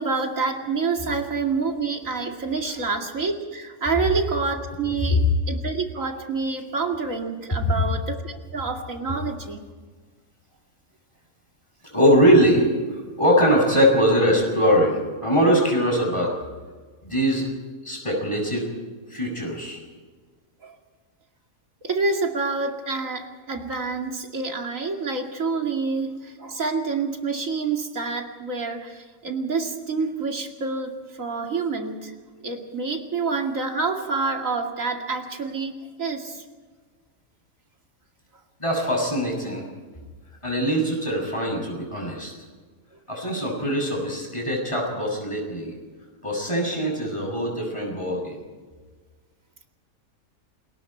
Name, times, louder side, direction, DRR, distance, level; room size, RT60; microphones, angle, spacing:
voice 1, 0.0-9.6 20.6-20.7 21.8-32.1 32.4-35.7 36.0-36.4, right 4 dB, 65° right, 3 dB, 2.7 m, -27 dB
voice 2, 11.9-16.3 17.0-17.5 17.8-18.7 19.1-19.8 38.6-39.6 40.4-42.3 43.1-45.8 46.2-48.4, equal, 20° left, 0 dB, 7.4 m, -22 dB
29.0 x 21.0 x 4.5 m, 1.4 s
omnidirectional pair, 1.5 m